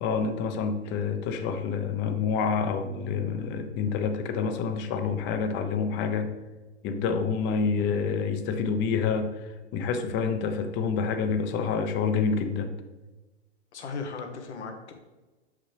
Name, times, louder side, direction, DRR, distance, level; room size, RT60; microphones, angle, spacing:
voice 1, 0.0-6.3 6.8-9.4 9.7-12.7, left 5 dB, 30° left, 8 dB, 0.8 m, -27 dB
voice 2, 13.7-14.9, left 4 dB, 75° left, 4 dB, 1.3 m, -36 dB
6.3 x 5.7 x 3.4 m, 1.2 s
hypercardioid pair, 115°, 34 cm